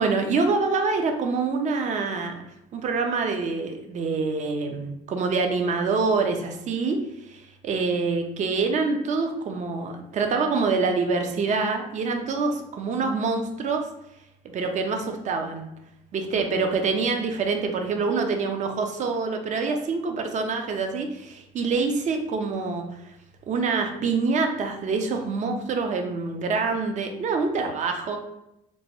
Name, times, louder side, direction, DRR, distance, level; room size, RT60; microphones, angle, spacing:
voice 1, 0.0-2.3 2.7-7.0 7.3-13.9 14.5-15.7 16.1-22.8 23.5-28.2, right 4 dB, 45° right, 5 dB, 0.5 m, -26 dB
2.9 x 2.2 x 2.9 m, 0.85 s
cardioid pair, 110°, 17 cm